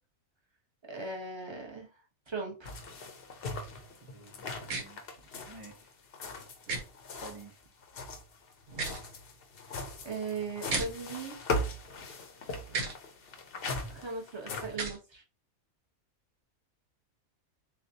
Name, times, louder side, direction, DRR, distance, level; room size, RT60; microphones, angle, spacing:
voice 1, 0.9-1.9 2.3-2.7 10.0-11.4 13.9-15.2, right 4 dB, 25° right, 1 dB, 0.8 m, -38 dB
sound 1, 2.6-7.5 7.8-14.8, left 2 dB, 50° left, 0.8 m, -39 dB
voice 2, 4.0-5.9 7.2-7.6, right 5 dB, 45° right, 1 dB, 0.4 m, -52 dB
sound 2, 4.7-4.8 6.7-6.8 8.7-9.0 10.7-10.9 12.7-12.9 14.7-15.0, right 4 dB, 80° right, 1.4 m, -33 dB
6.7 x 2.4 x 2.7 m, 0.34 s
omnidirectional pair, 1.5 m